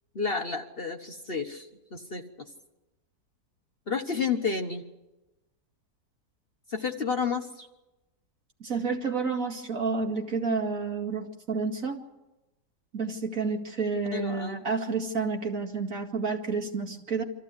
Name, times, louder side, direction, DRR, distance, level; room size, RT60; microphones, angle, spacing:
voice 1, 0.1-2.5 3.9-4.8 6.7-7.7 14.1-14.6, left 5 dB, 40° left, 4 dB, 1.3 m, -31 dB
voice 2, 8.6-12.0 12.9-17.2, right 4 dB, 55° right, 2 dB, 2.5 m, -30 dB
25.0 x 15.0 x 9.6 m, 1.0 s
omnidirectional pair, 1.7 m